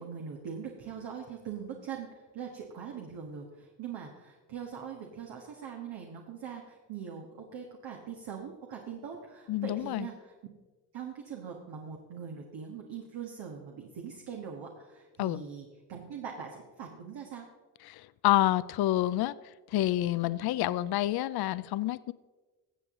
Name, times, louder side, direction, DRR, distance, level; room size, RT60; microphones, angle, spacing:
voice 1, 0.0-10.3 10.9-17.5, right 7 dB, 65° right, 0 dB, 1.6 m, -42 dB
voice 2, 9.5-10.1 15.2-15.4 17.8-19.4 19.7-22.1, left 14 dB, 55° left, 17 dB, 0.5 m, -28 dB
15.0 x 7.6 x 3.8 m, 1.2 s
hypercardioid pair, 50°, 46 cm